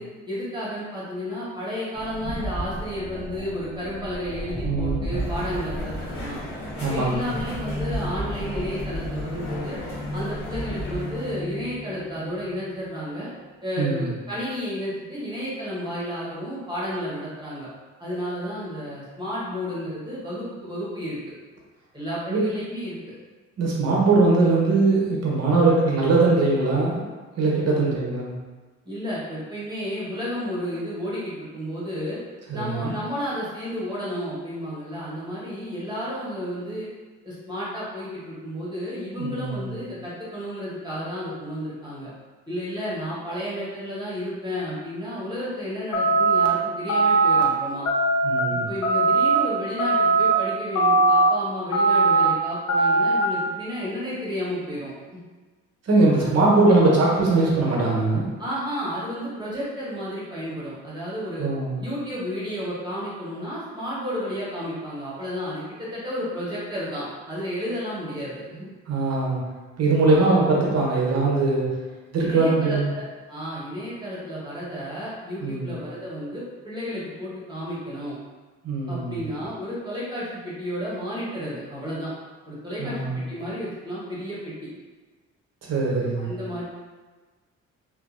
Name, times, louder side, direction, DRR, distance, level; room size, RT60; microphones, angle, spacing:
voice 1, 0.0-6.4 6.7-9.8 10.1-13.3 13.6-17.7 18.0-21.2 21.9-23.0 25.5-25.7 27.7-27.9 28.8-32.2 32.5-36.9 37.2-42.1 42.5-47.9 48.7-54.9 56.2-56.6 58.4-61.5 61.8-68.7 70.1-70.4 72.1-78.2 78.9-82.1 82.4-83.0 83.3-84.7 86.2-86.6, equal, 15° right, -8 dB, 1.1 m, -32 dB
sound 1, 1.9-13.0, equal, 45° left, 1.4 m, -33 dB
voice 2, 4.6-5.2 6.8-7.3 13.8-14.1 22.3-22.5 23.6-27.0 27.4-28.3 32.5-32.9 39.2-39.8 48.2-48.7 55.8-58.3 61.4-61.8 68.9-69.4 69.8-71.7 72.1-72.9 75.4-75.7 78.6-79.2 82.8-83.3 85.7-86.3, right 3 dB, 55° right, -4 dB, 0.9 m, -21 dB
Crowd, 5.1-11.4, left 1 dB, 80° left, 1.2 m, -38 dB
sound 2, 45.9-46.5 46.9-47.4 47.9-48.4 48.8-49.4 49.8-50.3 50.8-51.3 51.7-52.3 52.7-53.2, right 3 dB, 65° left, 0.6 m, -19 dB
2.6 x 2.5 x 2.5 m, 1.3 s
cardioid pair, 90°, 30 cm